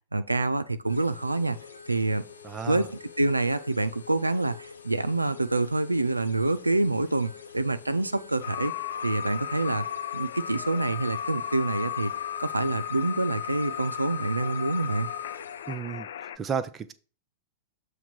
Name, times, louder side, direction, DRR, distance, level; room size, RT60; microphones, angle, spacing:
voice 1, 0.1-1.6 1.9-2.3 2.7-2.9 3.2-8.7 9.0-9.9 10.1-12.1 12.4-15.1, right 2 dB, 85° right, 11 dB, 0.3 m, -26 dB
sound 1, 0.8-15.8, left 6 dB, 75° left, 0.7 m, -47 dB
voice 2, 2.4-2.9 15.7-16.9, right 6 dB, 20° right, 10 dB, 0.6 m, -33 dB
sound 2, 8.4-16.4, left 9 dB, 60° left, 0.4 m, -35 dB
7.2 x 3.2 x 5.8 m, 0.38 s
figure-of-eight pair, 95°, 0 cm